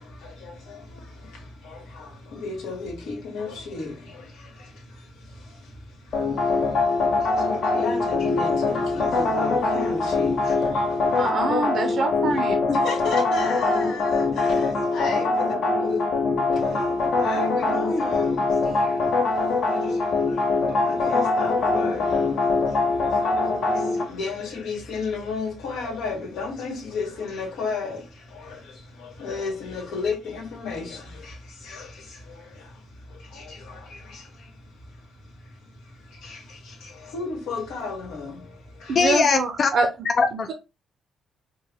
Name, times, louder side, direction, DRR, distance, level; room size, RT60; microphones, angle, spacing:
voice 1, 0.2-0.8 1.6-4.2 7.3-10.6 10.9-11.0 12.7-16.0 17.2-18.7 20.7-22.3 23.2-23.4 23.7-28.0 28.3-28.6 29.0-31.3 31.6-31.9 32.3-32.4 33.3-34.2 36.2-38.4 38.8-39.0, left 4 dB, 85° left, 1.5 m, -33 dB
sound 1, 6.1-24.0, left 3 dB, 65° left, 1.2 m, -23 dB
voice 2, 11.2-12.6 38.9-39.9, right 3 dB, 60° right, 0.6 m, -25 dB
voice 3, 38.9-39.7 40.2-40.5, left 5 dB, 50° left, 0.5 m, -21 dB
4.5 x 2.2 x 3.4 m
cardioid pair, 90°, 0 cm